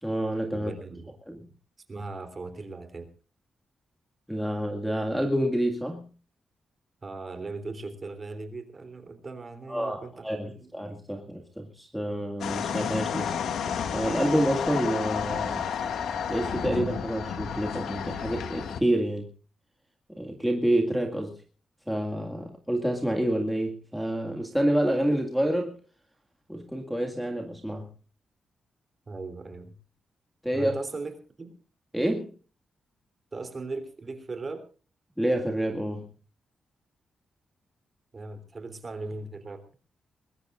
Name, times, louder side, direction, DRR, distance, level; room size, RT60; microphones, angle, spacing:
voice 1, 0.0-0.7 1.3-1.4 4.3-6.1 9.7-13.4 13.9-15.7 16.3-19.3 20.1-21.3 21.9-25.8 26.5-27.9 30.4-30.7 31.9-32.3 35.2-36.0, right 1 dB, ahead, 1 dB, 2.1 m, -28 dB
voice 2, 0.5-1.1 1.9-3.1 7.0-10.7 29.1-29.7 30.5-31.5 33.3-34.6 38.1-39.6, right 3 dB, 30° right, 8 dB, 3.4 m, -38 dB
sound 1, 12.4-18.8, left 7 dB, 85° left, 2.0 m, -31 dB
21.5 x 21.5 x 2.5 m, 0.37 s
wide cardioid pair, 165°, 0 cm